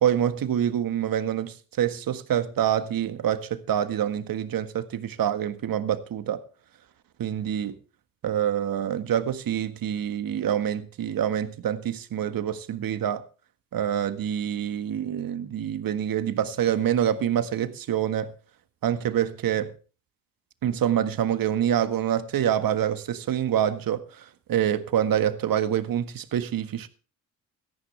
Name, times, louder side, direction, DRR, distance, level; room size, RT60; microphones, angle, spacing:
voice 1, 0.0-6.4 7.2-7.8 8.2-13.2 13.7-18.3 18.8-19.7 20.6-26.9, right 10 dB, 55° right, 1.7 m, -26 dB
17.5 x 14.0 x 3.4 m
hypercardioid pair, 55°, 42 cm